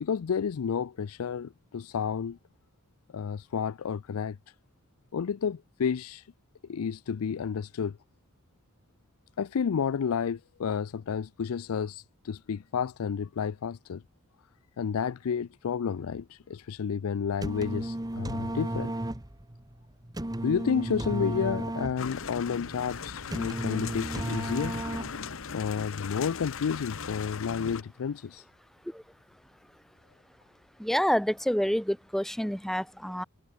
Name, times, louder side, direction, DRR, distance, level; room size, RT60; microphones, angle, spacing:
voice 1, 0.0-2.4 3.1-4.4 5.1-6.3 6.7-8.0 9.4-14.0 14.8-18.9 20.4-24.8 25.5-28.4, left 6 dB, 90° left, 0.4 m, -31 dB
sound 1, 17.2-25.4, right 1 dB, 20° right, 1.2 m, -34 dB
sound 2, 22.0-27.8, left 6 dB, 65° left, 1.0 m, -39 dB
voice 2, 30.8-33.2, equal, ahead, 0.9 m, -28 dB
head